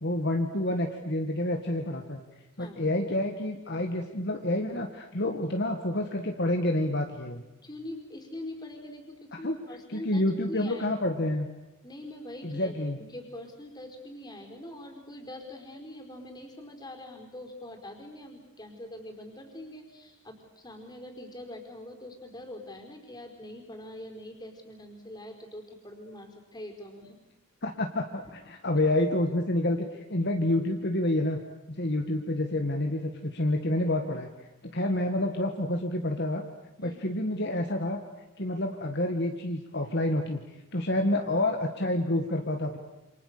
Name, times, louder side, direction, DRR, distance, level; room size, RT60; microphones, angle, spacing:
voice 1, 0.0-2.2 2.6-7.4 9.4-9.6 9.9-11.5 12.4-13.0 27.6-31.4 31.7-34.3 34.7-36.4 36.8-38.0 38.4-40.4 40.7-42.8, left 1 dB, 50° left, 4 dB, 1.9 m, -28 dB
voice 2, 7.6-10.9 11.8-27.2 34.8-34.9 36.8-37.0, left 1 dB, 20° left, 4 dB, 4.7 m, -43 dB
28.5 x 27.0 x 6.9 m, 0.98 s
head